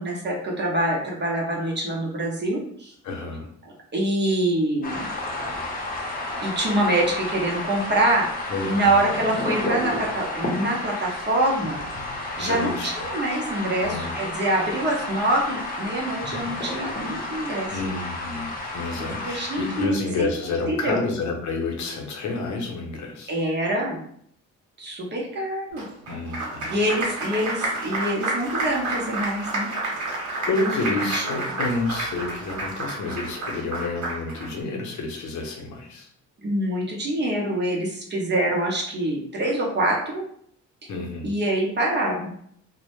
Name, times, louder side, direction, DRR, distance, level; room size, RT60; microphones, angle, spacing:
voice 1, 0.0-2.9 3.9-5.1 6.4-8.3 8.6-11.8 12.4-17.7 19.0-20.3 20.7-21.0 23.3-24.0 24.8-25.8 26.7-29.7 31.0-31.4 36.4-40.2 41.2-42.3, right 1 dB, 35° right, -2 dB, 0.7 m, -25 dB
voice 2, 3.0-3.5 8.5-9.0 12.4-12.9 13.8-14.1 17.7-23.4 26.1-26.7 30.1-36.1 40.9-41.3, left 3 dB, 70° left, 2 dB, 0.7 m, -29 dB
sound 1, 4.8-19.9, left 2 dB, 30° left, 0.7 m, -31 dB
Applause, 25.8-34.5, right 2 dB, 70° right, 1.0 m, -30 dB
2.1 x 2.0 x 3.0 m, 0.66 s
cardioid pair, 90°, 30 cm